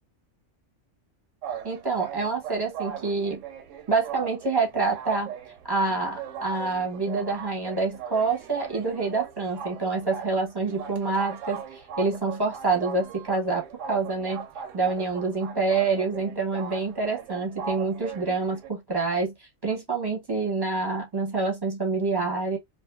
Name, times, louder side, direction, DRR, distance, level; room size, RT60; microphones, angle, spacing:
sound 1, 1.4-18.7, right 7 dB, 80° right, 0.9 m, -39 dB
voice 1, 1.6-3.4 3.9-5.3 5.7-13.6 13.9-14.5 14.7-22.6, right 3 dB, 25° right, 0.7 m, -27 dB
2.6 x 2.5 x 2.3 m
omnidirectional pair, 1.3 m